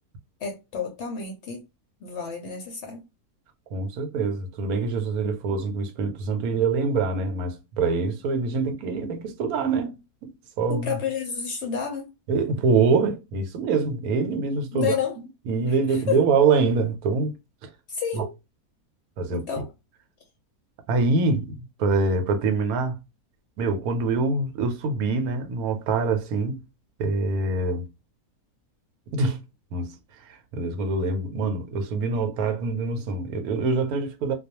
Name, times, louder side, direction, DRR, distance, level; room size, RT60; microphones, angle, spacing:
voice 1, 0.4-1.7 2.0-3.0 10.7-12.1 14.7-15.2 15.9-16.2 17.9-18.3 19.3-19.7, left 7 dB, 65° left, 0.7 m, -30 dB
voice 2, 3.7-9.9 10.2-10.3 10.6-11.0 12.3-15.0 15.5-17.3 17.6-17.7 18.1-18.2 19.2-19.6 20.9-22.9 23.6-26.6 27.0-27.9 29.1-29.4 29.7-29.9 30.2-34.3, right 4 dB, 80° right, 1.1 m, -25 dB
2.3 x 2.2 x 2.8 m
omnidirectional pair, 1.6 m